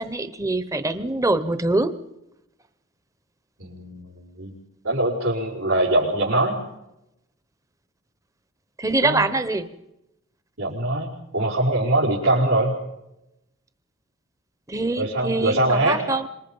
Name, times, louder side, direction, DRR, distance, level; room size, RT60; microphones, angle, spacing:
voice 1, 0.0-1.9 8.8-9.7 14.7-16.3, right 2 dB, 15° right, 12 dB, 0.9 m, -24 dB
voice 2, 3.6-4.5 4.8-6.6 9.0-9.2 10.6-12.8 15.0-16.0, right 1 dB, 85° right, -7 dB, 5.4 m, -22 dB
27.0 x 24.5 x 5.5 m, 0.90 s
head